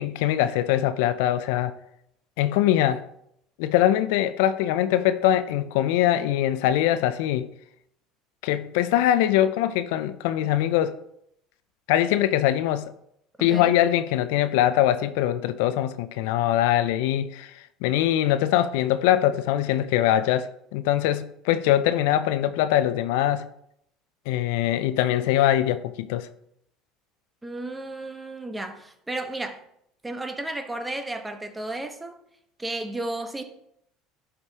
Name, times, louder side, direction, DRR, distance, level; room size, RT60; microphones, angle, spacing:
voice 1, 0.0-1.7 2.4-3.0 3.6-7.5 8.4-11.0 11.9-12.9 13.4-17.5 17.8-23.5 24.3-26.3, left 12 dB, 75° left, 0.4 m, -22 dB
voice 2, 27.4-29.6 30.0-32.2 32.6-33.4, right 2 dB, 15° right, 1.2 m, -33 dB
11.5 x 5.0 x 2.9 m
hypercardioid pair, 85°, 0 cm